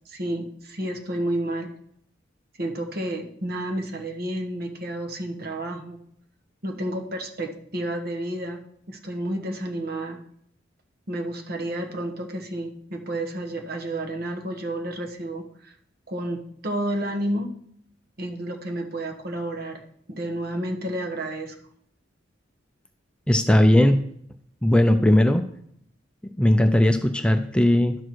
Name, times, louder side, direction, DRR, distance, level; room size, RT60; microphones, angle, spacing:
voice 1, 0.1-1.7 2.6-6.0 6.6-8.6 8.9-10.2 11.1-15.7 16.1-17.5 18.2-19.8 20.1-21.5, right 1 dB, 55° right, 3 dB, 1.3 m, -30 dB
voice 2, 23.3-24.0 24.6-25.5 26.4-28.0, left 1 dB, 5° left, 7 dB, 0.4 m, -18 dB
11.5 x 6.3 x 4.7 m, 0.68 s
head